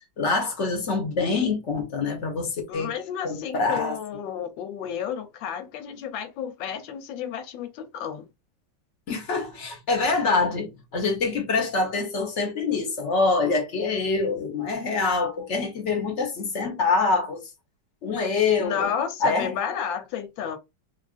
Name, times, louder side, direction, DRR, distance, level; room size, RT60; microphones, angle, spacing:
voice 1, 0.2-2.9 3.2-4.0 9.1-17.4 18.0-18.9 19.2-19.5, left 4 dB, 50° left, 0.9 m, -25 dB
voice 2, 2.7-8.3 18.6-20.6, left 8 dB, 85° left, 1.3 m, -31 dB
3.6 x 2.4 x 2.4 m
omnidirectional pair, 2.1 m